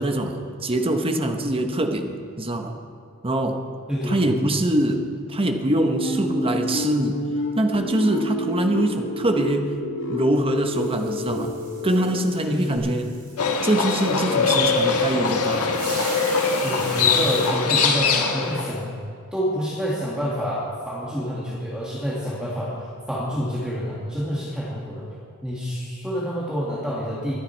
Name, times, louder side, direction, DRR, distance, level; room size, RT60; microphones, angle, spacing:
voice 1, 0.0-2.8 3.2-3.6 4.1-7.3 7.5-9.8 10.1-13.2 13.6-15.8, right 1 dB, 25° right, 5 dB, 1.0 m, -24 dB
voice 2, 3.9-4.3 12.4-12.8 16.6-18.9 19.3-25.0 25.4-27.3, equal, 5° right, -6 dB, 1.9 m, -28 dB
sound 1, 5.7-12.8, left 1 dB, 60° left, 2.4 m, -29 dB
sound 2, 10.7-17.5, right 3 dB, 40° right, 4.2 m, -40 dB
Livestock farm animals working animals, 13.4-18.7, left 4 dB, 85° left, 1.5 m, -22 dB
23.5 x 9.0 x 4.5 m, 2.4 s
head